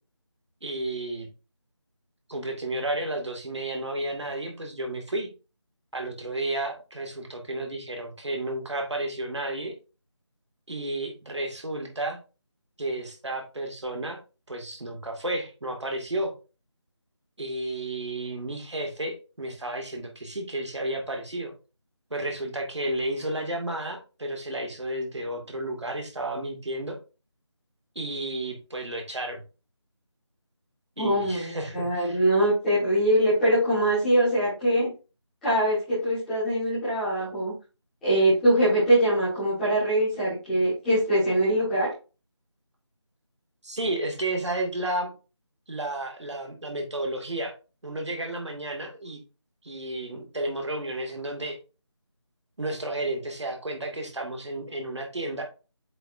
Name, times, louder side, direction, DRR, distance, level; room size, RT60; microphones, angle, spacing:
voice 1, 0.6-1.3 2.3-5.3 5.9-9.7 10.7-12.2 12.8-14.2 14.5-16.3 17.4-21.5 22.1-27.0 28.0-29.4 31.0-32.2 37.2-37.3 43.6-45.1 45.7-47.5 47.8-49.2 49.6-51.6 52.6-55.4, right 1 dB, 70° right, 2 dB, 2.3 m, -32 dB
voice 2, 31.0-34.9 35.4-37.5 38.0-41.9, right 1 dB, ahead, -18 dB, 1.6 m, -23 dB
7.8 x 5.3 x 2.7 m, 0.31 s
figure-of-eight pair, 180°, 15 cm